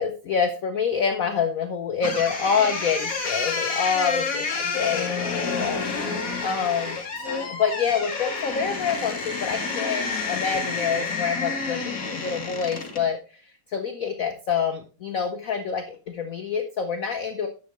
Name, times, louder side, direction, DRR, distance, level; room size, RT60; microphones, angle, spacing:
voice 1, 0.0-5.8 6.4-7.0 7.5-13.2 13.7-17.5, left 6 dB, 65° left, 6 dB, 0.8 m, -27 dB
sound 1, 2.0-13.1, left 4 dB, 45° left, 1.7 m, -29 dB
10.5 x 7.5 x 3.1 m, 0.35 s
omnidirectional pair, 2.4 m